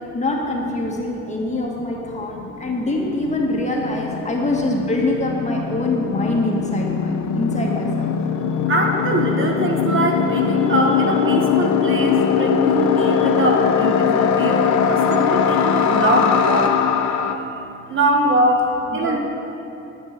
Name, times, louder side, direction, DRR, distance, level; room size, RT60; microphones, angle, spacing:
voice 1, 0.1-8.1 18.9-19.2, left 2 dB, 25° left, -2 dB, 2.0 m, -24 dB
sound 1, 1.8-1.9 2.1-17.4, left 7 dB, 70° left, 0.8 m, -21 dB
voice 2, 8.7-16.8 17.9-19.2, right 1 dB, 40° right, 2 dB, 1.3 m, -22 dB
11.5 x 6.2 x 7.7 m, 2.8 s
cardioid pair, 90°, 30 cm